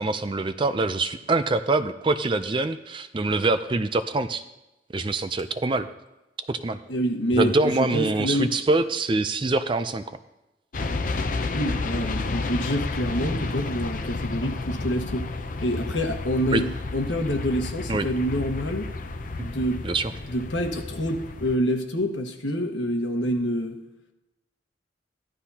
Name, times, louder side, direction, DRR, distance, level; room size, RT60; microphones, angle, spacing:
voice 1, 0.0-4.4 4.9-5.9 6.5-6.8 7.3-10.0 16.5-16.6 17.9-18.1 19.4-19.5 19.8-20.1, right 2 dB, 25° right, 11 dB, 0.4 m, -24 dB
voice 2, 6.9-8.5 11.5-15.3 15.6-18.9 19.4-19.8 20.2-23.8, equal, 80° left, 3 dB, 1.4 m, -27 dB
sound 1, 10.7-21.6, left 3 dB, 45° left, 0.6 m, -31 dB
14.5 x 11.5 x 2.8 m, 0.98 s
head